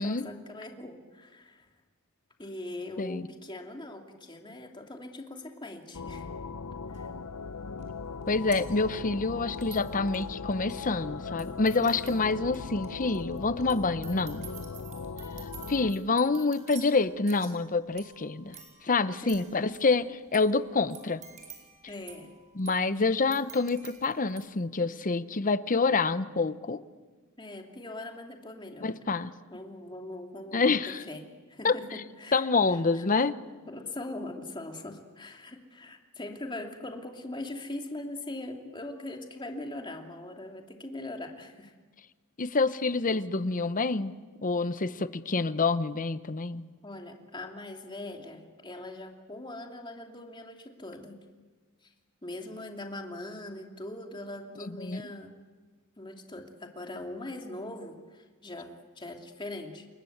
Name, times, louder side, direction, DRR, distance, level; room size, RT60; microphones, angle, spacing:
voice 1, 0.0-1.7 2.4-6.5 6.9-7.1 19.2-19.6 21.9-22.3 27.4-28.9 29.5-31.2 31.5-33.1 33.7-41.7 46.8-51.1 51.8-51.9 52.2-55.4 56.0-59.9, left 2 dB, 20° left, 3 dB, 2.7 m, -41 dB
sound 1, 5.9-15.9, left 4 dB, 85° left, 0.7 m, -39 dB
sound 2, 6.9-7.0 7.8-24.4, right 5 dB, 35° right, 5.1 m, -50 dB
voice 2, 8.3-14.5 15.7-18.6 18.8-21.2 22.6-26.8 28.8-29.3 30.5-31.0 31.6-31.8 32.3-33.4 42.4-44.1 44.4-46.6 54.6-55.0, left 3 dB, 35° left, 13 dB, 0.9 m, -27 dB
29.0 x 21.5 x 8.0 m, 1.4 s
head